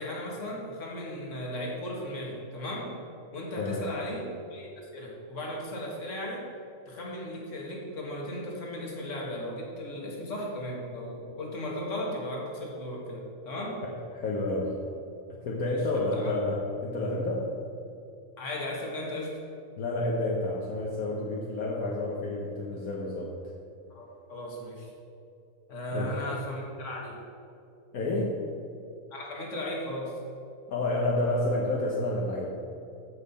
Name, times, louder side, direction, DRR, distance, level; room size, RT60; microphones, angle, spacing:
voice 1, 0.0-3.0 3.3-6.5 6.9-13.8 15.7-16.3 18.4-19.4 23.9-24.9 25.7-27.2 29.1-30.1, left 1 dB, 60° left, -2 dB, 1.9 m, -36 dB
voice 2, 3.6-3.9 14.1-14.8 15.4-17.5 19.8-23.3 25.9-26.1 27.9-28.4 30.7-32.5, left 2 dB, 75° left, -3 dB, 1.5 m, -29 dB
14.5 x 5.5 x 4.2 m, 2.6 s
omnidirectional pair, 1.5 m